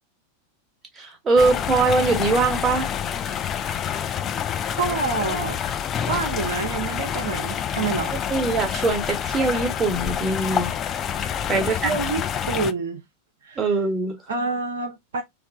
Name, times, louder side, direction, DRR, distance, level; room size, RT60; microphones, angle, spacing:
voice 1, 1.0-2.9 8.3-10.7 11.5-12.0 13.6-14.1, right 3 dB, 20° right, 1.2 m, -22 dB
sound 1, 1.4-12.7, left 9 dB, 30° left, 0.3 m, -27 dB
voice 2, 4.8-5.6 6.0-8.1 11.6-13.0 13.4-13.6 14.3-15.2, right 4 dB, 60° right, 0.6 m, -27 dB
3.2 x 2.0 x 3.5 m
figure-of-eight pair, 90°, 0 cm